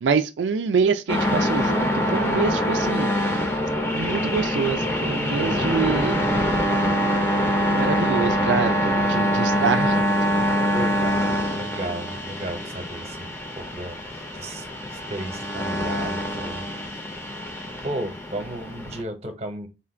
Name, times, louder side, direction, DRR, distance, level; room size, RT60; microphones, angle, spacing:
voice 1, 0.0-3.1 3.9-6.3 7.7-10.1, right 5 dB, 85° right, 0.4 m, -25 dB
sound 1, 1.1-19.0, equal, 15° left, 0.7 m, -24 dB
voice 2, 5.2-5.8 10.7-16.7 16.9-17.0 17.8-19.7, right 1 dB, 35° right, 0.9 m, -34 dB
4.3 x 2.4 x 4.3 m
head